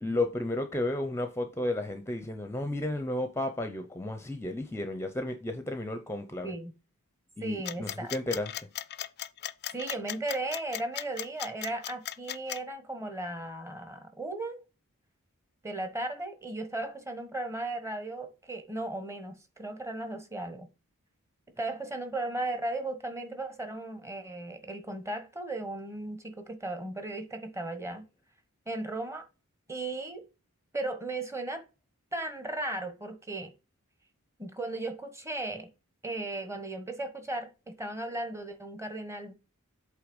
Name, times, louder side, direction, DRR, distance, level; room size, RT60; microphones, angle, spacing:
voice 1, 0.0-6.5 7.4-8.5, left 1 dB, 10° left, 0.7 m, -33 dB
voice 2, 7.4-8.1 9.7-14.6 15.6-20.7 21.6-28.0 28.7-29.3 29.7-30.2 30.7-31.6 32.1-33.5 34.4-35.7 36.0-39.3, right 2 dB, 15° right, 1.1 m, -36 dB
sound 1, 7.7-12.6, left 12 dB, 50° left, 0.4 m, -37 dB
8.1 x 3.3 x 5.3 m
head